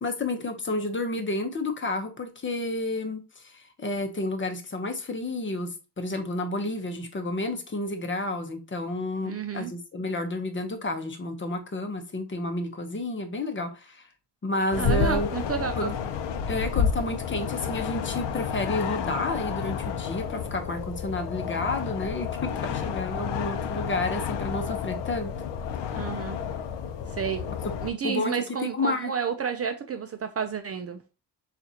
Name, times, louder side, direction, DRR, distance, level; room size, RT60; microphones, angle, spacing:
voice 1, 0.0-14.0 14.4-15.3 15.8-15.9 16.5-25.3 27.6-27.7 28.0-29.1, left 2 dB, 30° left, 0.8 m, -31 dB
voice 2, 9.2-9.7 14.8-15.9 25.9-26.4 27.2-27.4 27.8-31.0, right 6 dB, 35° right, 0.5 m, -30 dB
sound 1, 14.7-27.9, left 7 dB, 80° left, 0.7 m, -30 dB
6.9 x 2.5 x 2.8 m
cardioid pair, 115°, 42 cm